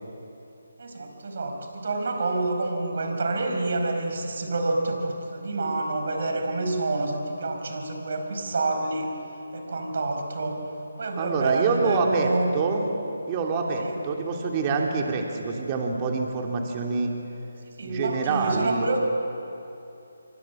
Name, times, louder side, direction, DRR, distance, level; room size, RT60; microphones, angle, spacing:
voice 1, 0.8-9.1 9.5-10.6 11.0-12.5 13.8-14.0 17.8-19.0, right 2 dB, 55° right, 3 dB, 5.1 m, -28 dB
voice 2, 11.2-12.8 13.3-17.1 17.8-18.9, right 4 dB, 25° right, 1 dB, 3.0 m, -26 dB
27.0 x 24.0 x 7.3 m, 2.8 s
figure-of-eight pair, 155°, 0 cm